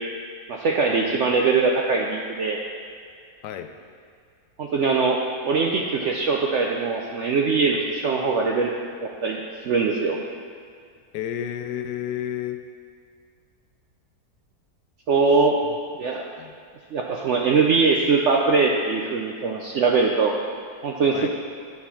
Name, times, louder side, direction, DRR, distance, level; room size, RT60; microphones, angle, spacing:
voice 1, 0.5-2.6 4.6-8.7 9.0-9.4 9.6-10.2 15.1-15.6 16.0-16.2 16.9-20.3 20.8-21.3, right 4 dB, 70° right, 0 dB, 0.7 m, -22 dB
voice 2, 11.1-12.6 16.4-16.5 21.1-21.3, left 10 dB, 80° left, 8 dB, 1.2 m, -30 dB
9.3 x 4.3 x 5.7 m, 2.2 s
omnidirectional pair, 1.8 m